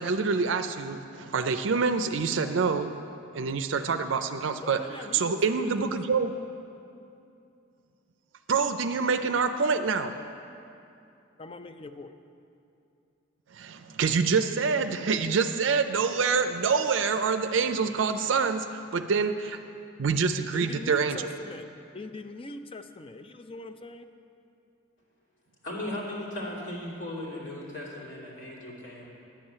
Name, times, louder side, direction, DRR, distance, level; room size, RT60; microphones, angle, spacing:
voice 1, 0.0-2.9 3.3-6.3 8.5-10.1 13.5-19.6 20.0-21.3, right 5 dB, 65° right, 8 dB, 0.4 m, -26 dB
voice 2, 4.6-5.9 11.4-12.1 20.5-21.6 21.9-24.1, left 2 dB, 25° left, 9 dB, 0.5 m, -41 dB
voice 3, 25.6-29.1, left 1 dB, 65° left, -5 dB, 2.7 m, -37 dB
10.0 x 7.2 x 8.8 m, 2.6 s
head